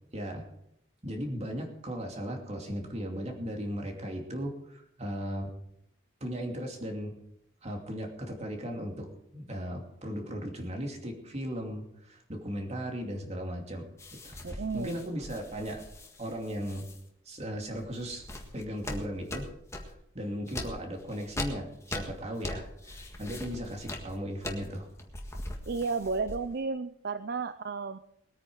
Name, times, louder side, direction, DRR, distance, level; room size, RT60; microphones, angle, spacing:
voice 1, 0.1-0.5 1.0-5.5 6.2-7.2 7.6-15.8 16.2-16.9 17.2-18.2 18.5-19.5 19.8-24.9, equal, 30° right, 2 dB, 2.6 m, -37 dB
sound 1, 14.0-17.0 17.6-20.0 20.5-26.6, left 1 dB, 15° left, 1.7 m, -41 dB
voice 2, 14.4-15.1 25.7-28.0, right 4 dB, 50° right, 12 dB, 0.5 m, -33 dB
21.0 x 9.3 x 4.7 m, 0.75 s
head